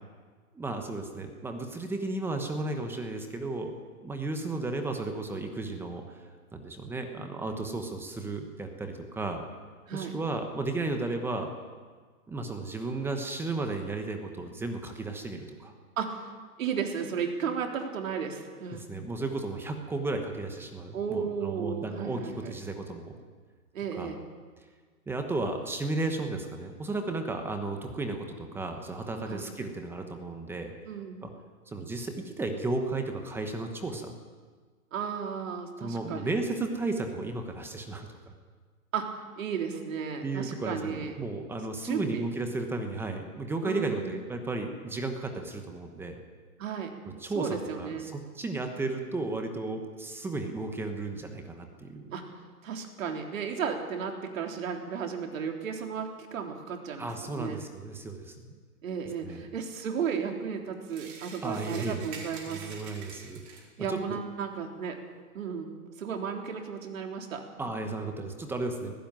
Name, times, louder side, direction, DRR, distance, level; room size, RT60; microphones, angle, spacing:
voice 1, 0.5-3.7 4.0-6.2 6.5-9.4 9.9-11.5 12.3-15.7 18.7-23.1 24.0-24.1 25.1-30.7 31.2-31.3 31.7-34.1 35.8-38.3 40.2-46.2 47.2-52.2 57.0-58.6 59.2-59.4 61.4-62.1 62.5-64.2 67.6-68.9, right 2 dB, 5° right, 5 dB, 1.0 m, -34 dB
voice 2, 16.0-16.3 16.6-18.8 20.9-22.5 23.7-24.2 29.3-29.5 30.9-31.2 34.9-36.3 38.9-41.1 41.8-42.2 43.6-44.2 46.6-46.9 47.4-48.1 52.1-52.2 52.6-57.6 58.8-62.8 63.8-65.0 65.3-65.7 66.0-67.7, right 6 dB, 60° right, 3 dB, 3.7 m, -34 dB
sound 1, 60.9-63.8, right 5 dB, 35° right, 4.9 m, -46 dB
18.0 x 16.0 x 9.1 m, 1.5 s
hypercardioid pair, 155°, 45 cm